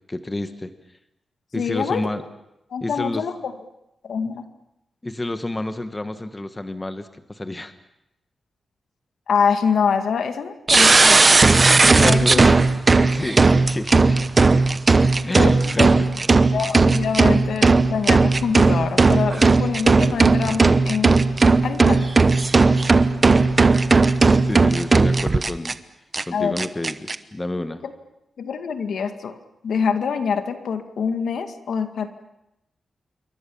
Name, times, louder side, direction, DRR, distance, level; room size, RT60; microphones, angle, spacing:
voice 1, 0.1-0.7 1.5-2.2 2.8-3.3 5.0-7.7 11.8-12.5 13.1-14.2 15.2-16.1 23.3-23.4 24.4-25.8 26.3-27.8, left 2 dB, 15° left, 9 dB, 1.3 m, -29 dB
voice 2, 1.5-2.1 2.7-3.5 4.0-4.4 9.3-11.5 12.0-12.6 15.2-15.9 16.5-21.1 21.6-22.1 26.3-26.6 27.8-27.9 28.4-29.4 29.6-32.1, left 6 dB, 80° left, 8 dB, 2.0 m, -25 dB
sound 1, 10.7-25.7 26.1-26.2 26.6-27.1, right 3 dB, 25° right, 1.0 m, -16 dB
27.5 x 23.5 x 7.2 m, 0.85 s
wide cardioid pair, 165°, 0 cm